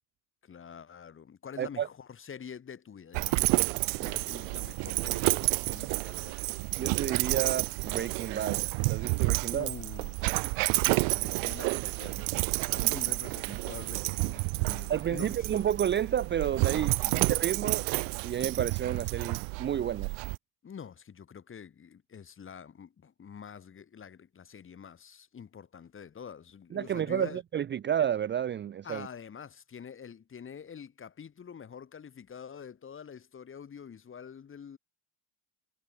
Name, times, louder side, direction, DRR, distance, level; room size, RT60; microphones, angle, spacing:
voice 1, 0.4-6.4 9.5-15.5 16.9-17.3 20.6-27.4 28.8-34.8, left 7 dB, 25° left, 3.3 m, -46 dB
voice 2, 1.6-1.9 6.8-8.6 8.9-9.7 12.8-12.9 13.5-13.6 14.9-17.9 18.2-20.1 26.7-29.1, right 9 dB, 25° right, 0.7 m, -31 dB
Dog, 3.1-20.4, right 35 dB, 70° right, 1.2 m, -30 dB
supercardioid pair, 120°, 46 cm